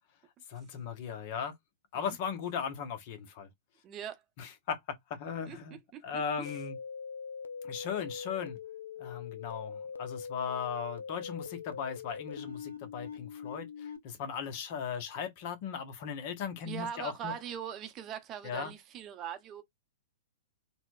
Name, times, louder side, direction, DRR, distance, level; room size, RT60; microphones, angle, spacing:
voice 1, 0.5-1.5 1.9-3.5 4.4-5.8 6.0-6.8 7.6-8.6 9.0-17.3 18.4-18.7, left 7 dB, 50° left, 0.8 m, -37 dB
voice 2, 3.8-4.2 5.5-6.6 16.6-19.6, right 9 dB, 30° right, 0.6 m, -41 dB
sound 1, 6.5-14.0, left 6 dB, 85° left, 0.4 m, -42 dB
4.2 x 2.1 x 2.4 m
hypercardioid pair, 115°, 0 cm